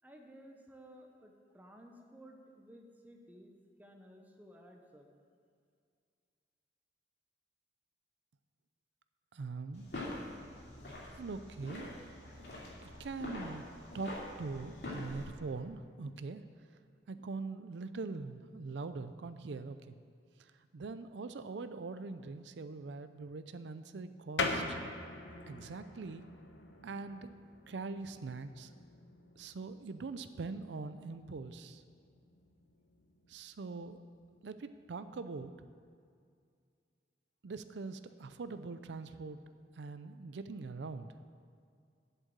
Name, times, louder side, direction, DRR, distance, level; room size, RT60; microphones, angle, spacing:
voice 1, 0.0-3.5 3.8-5.1 25.1-25.3, equal, 10° right, 2 dB, 1.0 m, -56 dB
voice 2, 9.3-9.9 11.2-12.0 12.8-13.6 13.9-16.4 17.1-20.0 20.4-24.8 25.5-26.2 26.8-27.3 27.7-28.7 29.4-31.8 33.3-34.0 34.4-35.5 37.4-39.4 39.8-41.1, right 4 dB, 85° right, 11 dB, 0.5 m, -42 dB
sound 1, 9.7-15.2, left 1 dB, 70° left, 2.7 m, -45 dB
sound 2, 24.4-34.6, left 3 dB, 85° left, 1.1 m, -44 dB
8.2 x 7.5 x 8.8 m, 2.2 s
head